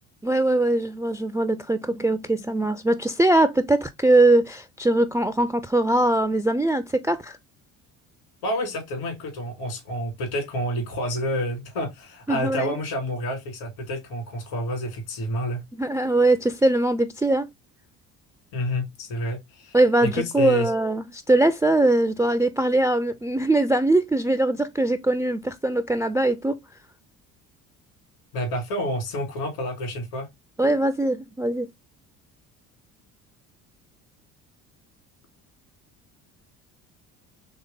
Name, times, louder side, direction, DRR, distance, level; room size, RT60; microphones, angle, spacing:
voice 1, 0.2-7.4 12.3-12.8 15.7-17.5 19.7-26.6 30.6-31.7, right 2 dB, 5° right, 0.3 m, -21 dB
voice 2, 8.4-15.6 18.5-19.8 20.0-20.7 28.3-30.3, equal, 70° left, 2.3 m, -29 dB
4.0 x 3.3 x 3.7 m
hypercardioid pair, 55°, 44 cm